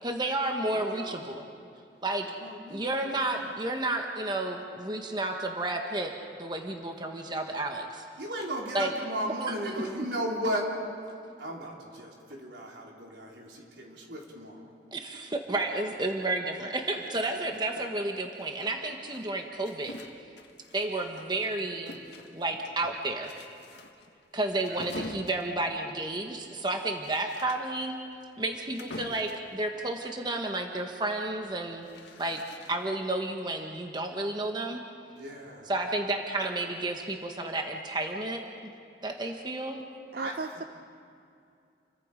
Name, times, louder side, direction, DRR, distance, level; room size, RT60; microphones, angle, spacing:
voice 1, 0.0-1.4 2.0-2.3 2.7-6.1 6.4-8.0 8.7-8.9 9.5-9.6 14.9-19.9 20.7-22.0 22.3-23.3 24.3-28.0 28.4-31.9 32.2-32.4 32.7-34.8 35.7-38.7 39.0-39.8, right 2 dB, 25° right, 3 dB, 1.3 m, -31 dB
voice 2, 0.7-1.3 2.2-3.4 8.2-10.7 11.4-14.7 17.2-17.8 24.5-24.8 35.1-35.7 40.2-40.3, right 1 dB, 80° right, -2 dB, 4.3 m, -36 dB
sound 1, 18.4-21.5 21.9-29.5 31.4-33.0, left 2 dB, 80° left, 1.7 m, -46 dB
voice 3, 40.1-40.6, right 3 dB, 55° right, 8 dB, 0.7 m, -36 dB
29.0 x 23.0 x 5.2 m, 2.5 s
head